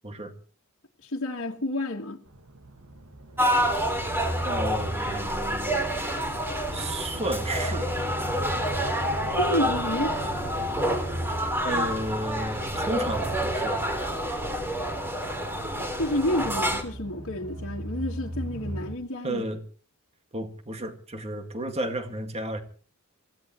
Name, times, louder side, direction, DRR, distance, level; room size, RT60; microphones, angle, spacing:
voice 1, 1.0-2.2 9.4-10.1 16.0-19.4, left 1 dB, 60° left, 1.7 m, -29 dB
sound 1, 2.3-18.9, right 1 dB, 65° right, 1.8 m, -37 dB
sound 2, 3.4-16.8, equal, 10° right, 3.1 m, -28 dB
voice 2, 4.4-5.9 6.7-7.9 11.6-13.9 19.2-19.6 20.3-22.6, right 1 dB, 30° right, 2.1 m, -32 dB
27.0 x 16.5 x 3.1 m
head